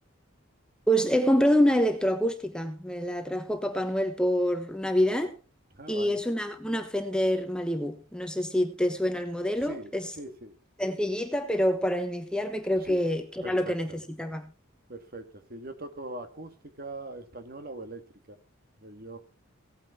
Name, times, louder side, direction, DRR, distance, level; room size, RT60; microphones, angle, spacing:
voice 1, 0.9-5.3 5.9-10.1 10.8-14.5, equal, 5° left, 1.1 m, -26 dB
voice 2, 5.7-6.2 9.6-10.5 12.8-13.1 13.4-14.0 14.9-16.5 16.8-18.0 18.3-18.4 18.8-19.2, right 2 dB, 45° right, 2.0 m, -41 dB
17.0 x 9.2 x 4.3 m
head